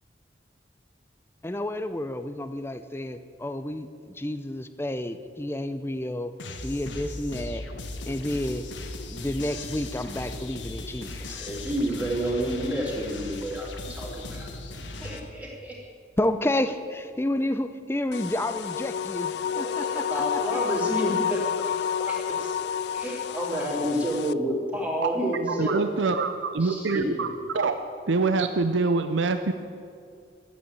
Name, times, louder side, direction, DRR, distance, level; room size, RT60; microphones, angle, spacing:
voice 1, 1.4-6.3 6.6-7.6 8.1-8.7 9.0-11.4 16.2-20.4, left 1 dB, 15° left, 11 dB, 0.6 m, -30 dB
sound 1, 6.4-15.2, left 2 dB, 85° left, 1.3 m, -38 dB
voice 2, 11.3-14.5 15.0-15.7 19.5-21.4 22.0-22.5 22.9-25.8 26.6-27.3, equal, 10° right, -4 dB, 2.8 m, -30 dB
sound 2, 18.1-24.3, left 8 dB, 60° left, 0.3 m, -29 dB
voice 3, 25.5-27.3 27.5-27.8 28.1-29.5, right 4 dB, 90° right, 8 dB, 0.6 m, -25 dB
12.5 x 8.7 x 8.8 m, 2.4 s
head